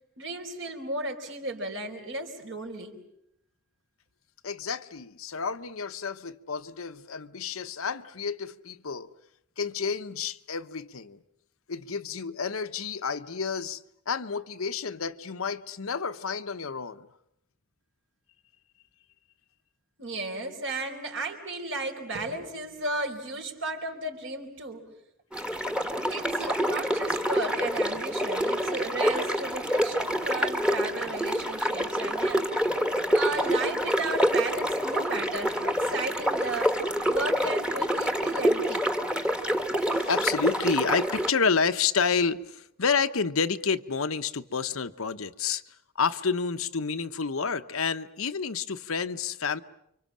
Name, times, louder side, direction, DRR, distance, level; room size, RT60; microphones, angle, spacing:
voice 1, 0.2-2.9 20.0-24.9 26.1-32.5 33.1-36.7 37.1-38.9, right 2 dB, 60° right, 4.4 m, -34 dB
voice 2, 4.4-9.1 9.6-11.2 11.7-17.1 39.7-49.6, left 5 dB, 80° left, 1.0 m, -30 dB
sound 1, 25.3-41.3, equal, 5° right, 1.4 m, -27 dB
29.5 x 25.0 x 7.5 m
head